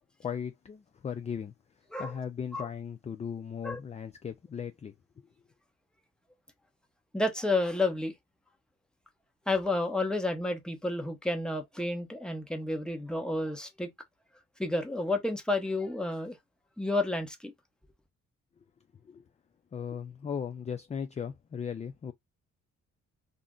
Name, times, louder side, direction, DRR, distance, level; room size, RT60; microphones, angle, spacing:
voice 1, 0.2-1.5 2.0-5.3 19.0-19.3 19.7-22.1, left 7 dB, 25° left, 0.3 m, -37 dB
voice 2, 7.1-8.1 9.5-13.9 14.6-16.4 16.8-17.5, left 2 dB, 5° left, 0.8 m, -30 dB
2.5 x 2.1 x 3.6 m
cardioid pair, 90°, 30 cm